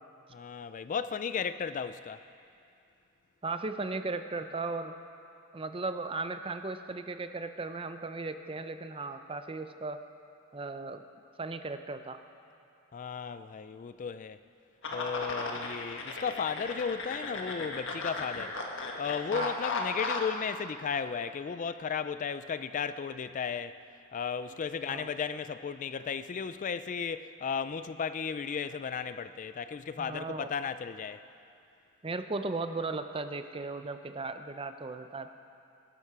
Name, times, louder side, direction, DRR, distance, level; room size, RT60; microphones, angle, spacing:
voice 1, 0.3-2.2 12.9-14.4 14.9-18.6 19.0-23.8 24.1-31.2, left 6 dB, 35° left, 12 dB, 0.3 m, -35 dB
voice 2, 3.4-4.9 5.5-10.0 10.5-11.0 11.4-12.2 19.3-19.5 24.9-25.1 30.0-30.5 32.0-35.3, right 3 dB, 25° right, 9 dB, 0.6 m, -36 dB
sound 1, 14.8-20.3, left 3 dB, 60° left, 1.5 m, -36 dB
21.0 x 12.0 x 4.8 m, 2.6 s
head